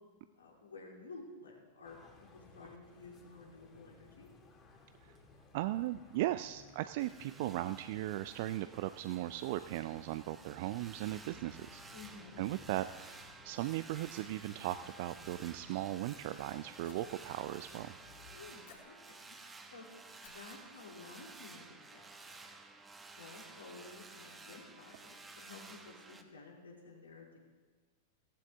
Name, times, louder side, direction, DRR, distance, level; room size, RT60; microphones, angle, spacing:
voice 1, 0.4-4.3 11.9-12.4 18.3-19.3 19.7-19.8 20.2-22.4 23.2-27.4, left 3 dB, 75° left, -1 dB, 3.1 m, -53 dB
sound 1, 1.8-18.5, left 4 dB, 25° left, 2.4 m, -60 dB
voice 2, 5.5-11.8 12.4-17.9, right 15 dB, 50° right, 12 dB, 0.4 m, -37 dB
sound 2, 7.0-26.2, right 3 dB, 15° right, 1.3 m, -54 dB
sound 3, 12.9-15.4 15.8-16.3 16.8-17.7 18.0-18.3 18.7-19.7 20.2-20.3, left 5 dB, 60° left, 3.0 m, -64 dB
16.0 x 14.5 x 3.5 m, 1.5 s
figure-of-eight pair, 95°, 0 cm